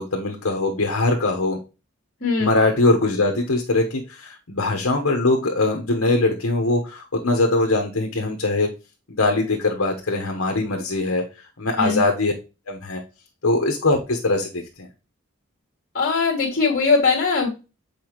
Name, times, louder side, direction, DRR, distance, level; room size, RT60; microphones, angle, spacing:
voice 1, 0.0-1.6 2.4-8.7 9.1-11.2 11.6-12.3 12.7-13.0 13.4-14.9, left 2 dB, 70° left, 2 dB, 1.1 m, -22 dB
voice 2, 2.2-2.5 11.8-12.0 15.9-17.5, left 4 dB, 50° left, -2 dB, 1.7 m, -20 dB
6.9 x 4.6 x 3.0 m, 0.30 s
head